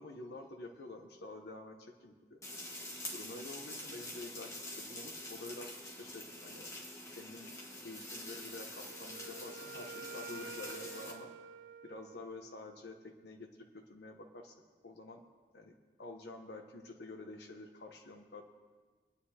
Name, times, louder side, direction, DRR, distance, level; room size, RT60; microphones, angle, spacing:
voice 1, 0.0-2.4 3.1-6.7 7.2-7.5 7.8-11.3 11.8-14.6 14.8-15.2 15.5-18.4, left 2 dB, 75° left, 3 dB, 0.9 m, -49 dB
sound 1, 2.4-11.1, left 1 dB, 15° left, 1.5 m, -46 dB
Wind instrument woodwind instrument, 8.8-12.7, right 5 dB, 85° right, 0.5 m, -49 dB
23.0 x 9.6 x 2.8 m, 1.5 s
head